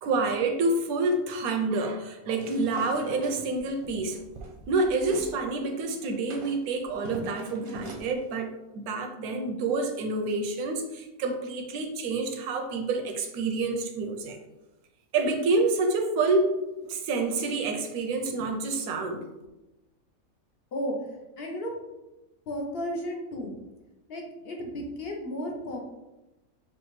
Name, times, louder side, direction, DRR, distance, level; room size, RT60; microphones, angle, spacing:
voice 1, 0.0-4.2 4.7-14.4 15.1-16.5 16.8-19.3, right 3 dB, 90° right, 5 dB, 1.1 m, -28 dB
sound 1, 2.4-5.3 5.7-8.1, right 3 dB, 50° right, 0.7 m, -43 dB
voice 2, 21.4-21.7 22.5-23.5 24.1-25.8, equal, 50° left, 0 dB, 0.8 m, -33 dB
5.6 x 2.3 x 3.1 m, 0.99 s
omnidirectional pair, 1.5 m